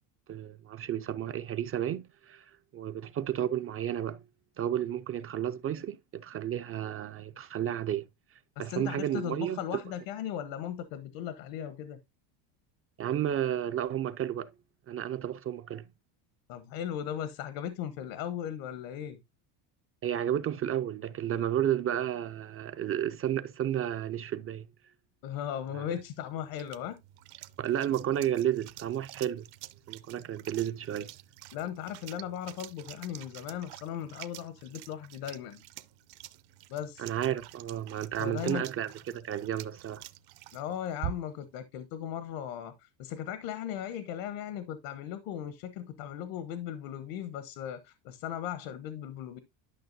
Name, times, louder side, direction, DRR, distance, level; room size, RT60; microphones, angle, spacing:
voice 1, 0.3-4.2 4.6-8.1 8.6-9.6 13.0-14.5 14.9-15.9 20.0-24.7 25.7-25.9 27.6-29.5 29.9-31.1 37.0-40.1, right 10 dB, 30° right, 0.4 m, -32 dB
voice 2, 8.6-12.0 16.5-19.2 25.2-27.0 31.5-35.6 36.7-37.1 38.2-38.6 40.5-49.4, left 10 dB, 75° left, 1.2 m, -37 dB
sound 1, 26.0-41.5, right 13 dB, 55° right, 0.8 m, -47 dB
11.5 x 5.8 x 2.6 m
cardioid pair, 125°, 45 cm